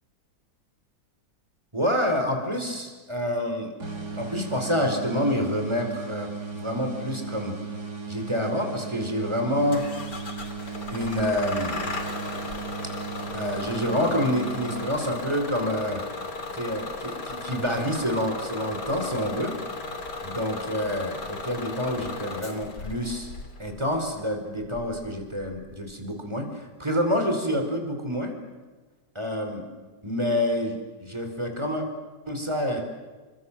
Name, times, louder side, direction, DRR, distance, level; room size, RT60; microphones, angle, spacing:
voice 1, 1.7-3.7 4.2-6.3 6.6-7.6 8.1-10.1 10.9-11.8 13.3-16.0 16.5-19.5 20.2-23.3 23.6-28.3 29.1-29.7 30.0-31.9 32.3-32.8, equal, 15° right, 5 dB, 4.9 m, -27 dB
sound 1, 3.8-15.5, right 5 dB, 65° right, 4.5 m, -36 dB
Bus / Engine starting, 9.7-25.9, left 3 dB, 75° left, 3.5 m, -36 dB
29.5 x 26.0 x 7.6 m, 1.3 s
omnidirectional pair, 1.8 m